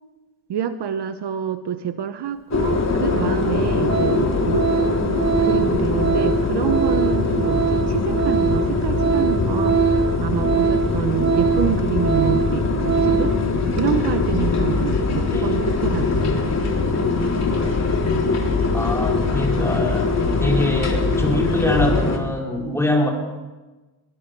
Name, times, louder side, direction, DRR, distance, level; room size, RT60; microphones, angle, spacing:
voice 1, 0.5-4.7 5.4-13.4 13.7-16.5, right 9 dB, 55° right, 9 dB, 1.2 m, -27 dB
sound 1, 2.5-22.2, left 4 dB, 35° left, 3.6 m, -22 dB
Organ, 2.8-2.9 3.4-3.6 3.8-13.4 13.8-13.9, right 7 dB, 35° right, 1.4 m, -23 dB
voice 2, 18.7-20.1 20.4-23.1, left 1 dB, 5° left, -1 dB, 4.7 m, -23 dB
23.0 x 20.0 x 7.0 m, 1.2 s
cardioid pair, 150°, 47 cm